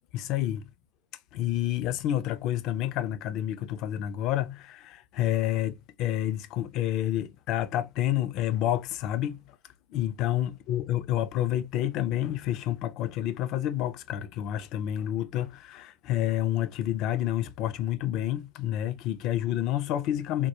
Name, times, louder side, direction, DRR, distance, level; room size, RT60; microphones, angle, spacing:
voice 1, 0.1-0.7 1.3-9.4 9.9-20.5, left 12 dB, 40° left, 0.4 m, -29 dB
3.5 x 2.1 x 2.8 m
figure-of-eight pair, 90°, 0 cm